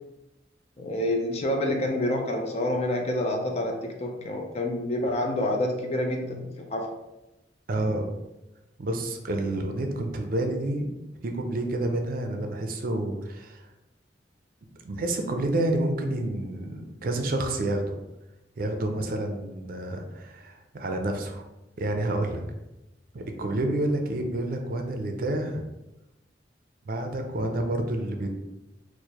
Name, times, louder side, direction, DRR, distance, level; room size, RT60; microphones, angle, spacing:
voice 1, 0.8-6.9, left 1 dB, 35° left, 2 dB, 0.5 m, -28 dB
voice 2, 7.7-8.0 8.8-10.9 11.2-13.7 14.8-18.0 18.6-21.4 21.8-22.4 23.1-25.7 26.8-28.3, right 1 dB, 50° right, 4 dB, 0.4 m, -29 dB
4.6 x 2.1 x 2.9 m, 0.97 s
head